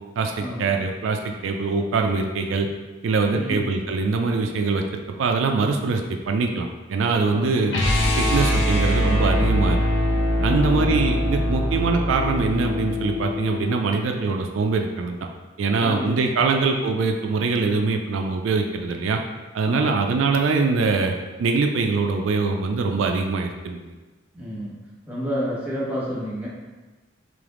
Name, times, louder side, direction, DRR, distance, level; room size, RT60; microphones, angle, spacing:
voice 1, 0.2-2.7 3.0-7.7 8.2-9.8 10.4-15.2 15.6-19.2 19.5-21.1 21.4-23.9, right 4 dB, 85° right, 3 dB, 0.4 m, -23 dB
voice 2, 3.3-3.7 7.3-7.6 10.5-11.1 15.8-16.1 16.4-16.5 19.6-20.0 24.3-24.8 25.1-26.5, equal, 5° right, -6 dB, 1.1 m, -30 dB
sound 1, 7.7-13.7, equal, 70° left, 0.7 m, -22 dB
3.4 x 3.3 x 3.6 m, 1.2 s
head